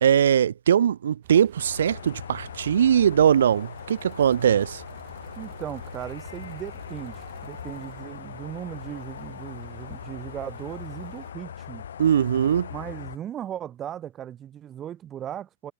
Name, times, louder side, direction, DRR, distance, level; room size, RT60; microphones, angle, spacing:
voice 1, 0.0-4.8 12.0-12.7, right 9 dB, 80° right, 0.4 m, -21 dB
sound 1, 1.2-11.3, right 20 dB, 40° right, 4.0 m, -50 dB
sound 2, 1.6-13.2, left 8 dB, 90° left, 1.0 m, -40 dB
voice 2, 5.4-11.9 12.7-15.7, right 10 dB, 15° right, 0.5 m, -37 dB
hypercardioid pair, 170°, 0 cm